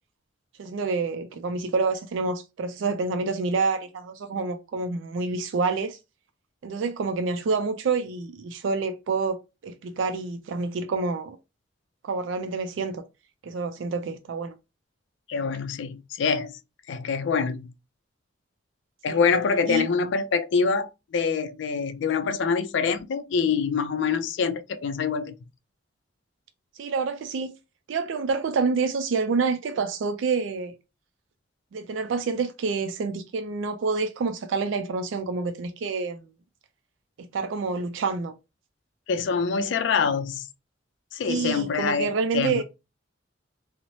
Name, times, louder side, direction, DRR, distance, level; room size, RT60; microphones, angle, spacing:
voice 1, 0.6-6.0 6.6-11.4 12.0-13.0 13.4-14.5 19.1-19.2 19.7-19.9 26.8-27.5 27.9-30.7 31.7-36.2 37.2-38.3 41.3-42.6, right 4 dB, 80° right, 0.4 m, -28 dB
voice 2, 15.3-16.6 16.9-17.7 19.0-25.4 39.1-40.5 41.1-42.6, left 5 dB, 70° left, 0.4 m, -25 dB
2.6 x 2.0 x 3.0 m
head